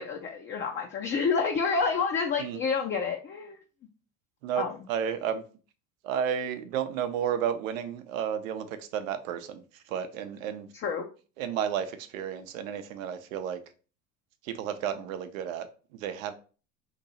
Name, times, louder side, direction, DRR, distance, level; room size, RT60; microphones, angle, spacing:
voice 1, 0.0-3.6 4.5-4.7 10.8-11.1, left 5 dB, 30° left, 0.5 m, -28 dB
voice 2, 4.4-5.4 6.0-10.7 11.4-13.6 14.4-15.7 15.9-16.3, right 8 dB, 80° right, 0.7 m, -32 dB
2.9 x 2.7 x 4.0 m
hypercardioid pair, 90°, 39 cm